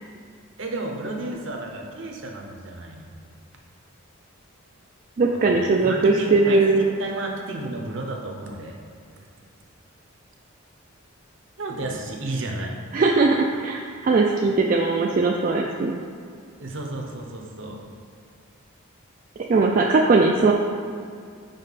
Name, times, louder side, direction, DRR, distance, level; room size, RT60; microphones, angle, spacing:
voice 1, 0.6-3.2 5.4-8.8 11.6-12.8 16.6-17.8, right 2 dB, 60° right, 1 dB, 0.8 m, -32 dB
voice 2, 5.2-6.9 12.9-16.0 19.5-20.5, right 3 dB, 40° right, 0 dB, 0.3 m, -19 dB
5.3 x 5.2 x 4.1 m, 2.3 s
head